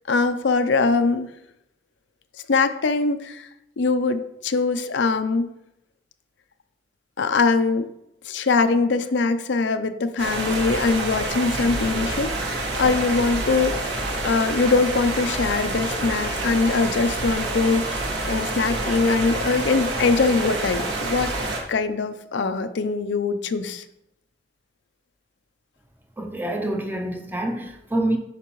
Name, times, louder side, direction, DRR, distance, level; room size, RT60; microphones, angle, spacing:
voice 1, 0.1-1.3 2.5-3.5 3.8-5.5 7.2-7.9 8.3-13.9 14.2-21.3 21.7-23.8, left 4 dB, 85° left, 0.5 m, -22 dB
sound 1, 10.2-21.6, right 2 dB, 75° right, 1.4 m, -27 dB
voice 2, 26.2-28.2, right 1 dB, 10° right, 0.6 m, -26 dB
8.1 x 5.9 x 3.1 m
head